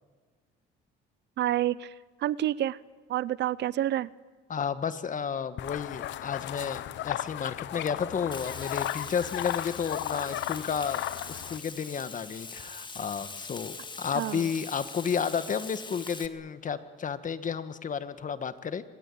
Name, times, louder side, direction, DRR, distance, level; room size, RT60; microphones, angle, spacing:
voice 1, 1.4-2.8 3.1-4.1 14.1-14.5, right 13 dB, 60° right, 20 dB, 0.7 m, -29 dB
voice 2, 4.5-11.0 11.3-18.8, left 6 dB, 40° left, 12 dB, 1.7 m, -32 dB
sound 1, 5.6-11.6, left 14 dB, 70° left, 0.9 m, -35 dB
Frying (food), 8.3-16.3, left 4 dB, 25° left, 1.8 m, -42 dB
25.5 x 20.5 x 8.7 m, 1.4 s
cardioid pair, 90°, 20 cm